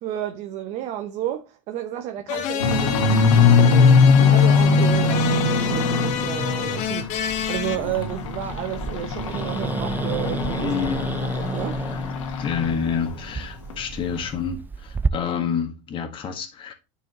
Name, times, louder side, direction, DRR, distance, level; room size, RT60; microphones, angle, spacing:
voice 1, 0.0-11.8, right 11 dB, 50° right, 0.8 m, -32 dB
sound 1, 2.3-7.8, left 10 dB, 50° left, 1.0 m, -28 dB
sound 2, 2.6-7.2 7.5-12.8 13.0-13.3 13.7-13.8 14.2-14.3, left 5 dB, 85° left, 1.6 m, -20 dB
Growling, 4.6-15.1, right 4 dB, 10° right, 0.4 m, -33 dB
voice 2, 7.6-7.9 10.6-11.1 11.8-12.0 12.4-16.7, left 6 dB, 35° left, 1.6 m, -28 dB
9.1 x 5.0 x 3.0 m
supercardioid pair, 120°, 16 cm